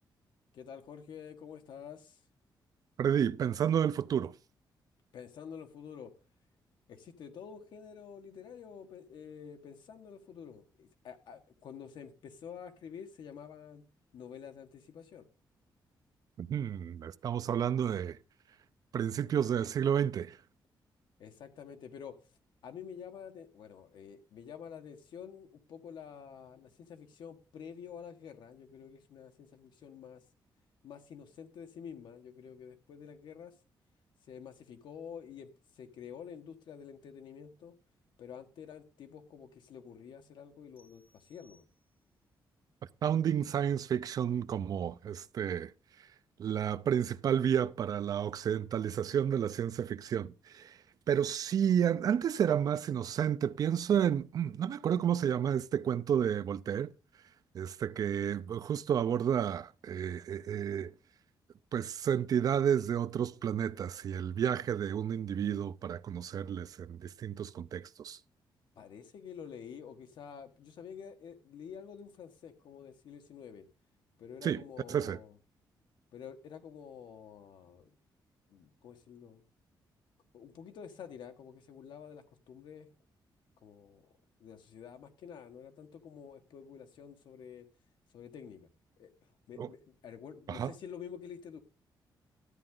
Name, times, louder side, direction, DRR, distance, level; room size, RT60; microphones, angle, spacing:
voice 1, 0.5-2.2 5.1-6.1 6.9-13.8 14.1-15.3 21.2-22.2 22.6-30.2 30.8-33.5 34.3-35.5 35.7-37.7 38.2-41.7 68.8-73.7 74.2-75.4 76.1-77.9 78.5-79.4 80.3-82.9 83.6-84.1 84.4-87.7 88.1-88.7 89.0-89.1 89.5-91.6, left 7 dB, 70° left, 1.5 m, -48 dB
voice 2, 3.0-4.3 16.4-18.2 18.9-20.4 43.0-45.7 46.4-50.8 51.1-56.9 57.5-60.9 61.7-68.2 74.4-74.6 74.9-75.2 89.6-89.7 90.5-90.7, right 9 dB, 50° right, 0.5 m, -31 dB
sound 1, 40.8-42.3, left 2 dB, 25° right, 3.6 m, -69 dB
13.0 x 8.7 x 3.8 m
wide cardioid pair, 165°, 8 cm